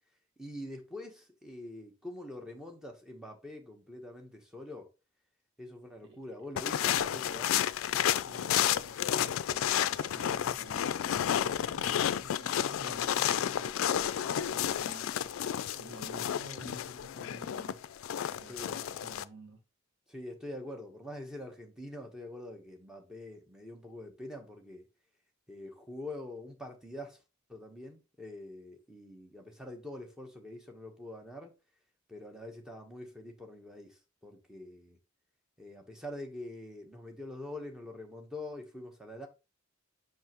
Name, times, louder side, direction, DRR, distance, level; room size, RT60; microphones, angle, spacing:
voice 1, 0.4-4.9 5.6-7.6 18.5-18.8 20.1-24.9 25.5-27.2 27.5-31.5 32.1-35.0 35.6-39.3, left 1 dB, 5° right, 1.0 m, -45 dB
sound 1, 6.6-19.2, left 10 dB, 75° left, 0.3 m, -31 dB
voice 2, 8.1-19.6, right 2 dB, 55° right, 1.3 m, -51 dB
5.8 x 5.5 x 2.9 m
head